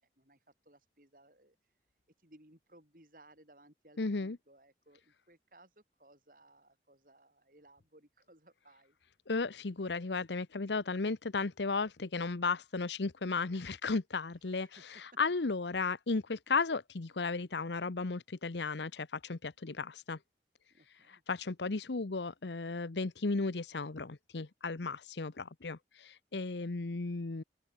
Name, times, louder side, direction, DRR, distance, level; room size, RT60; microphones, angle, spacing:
voice 1, 0.2-1.6 2.2-9.0 14.5-14.8 20.7-21.2, right 1 dB, 50° right, 6.5 m, -62 dB
voice 2, 4.0-4.4 9.3-20.2 21.1-27.4, left 4 dB, 80° left, 0.9 m, -35 dB
open air
head